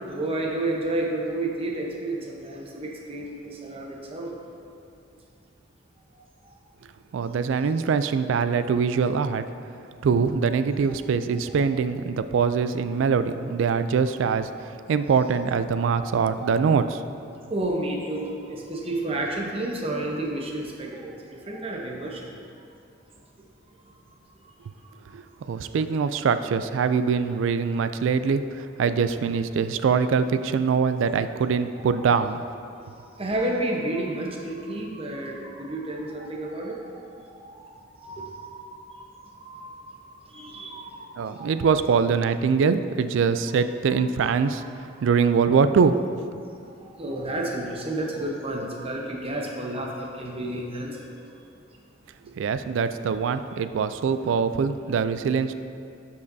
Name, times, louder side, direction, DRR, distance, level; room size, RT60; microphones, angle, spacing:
voice 1, 0.0-4.3 10.9-11.0 15.9-16.5 17.5-22.3 24.4-24.5 24.8-25.0 32.2-32.3 33.0-37.7 38.0-41.6 44.3-44.5 46.5-51.1, right 1 dB, 30° right, -1 dB, 0.9 m, -31 dB
voice 2, 7.1-9.4 10.0-17.0 25.1-32.4 41.2-46.0 52.3-55.5, right 5 dB, 75° right, 11 dB, 0.3 m, -23 dB
11.5 x 5.5 x 2.7 m, 2.5 s
head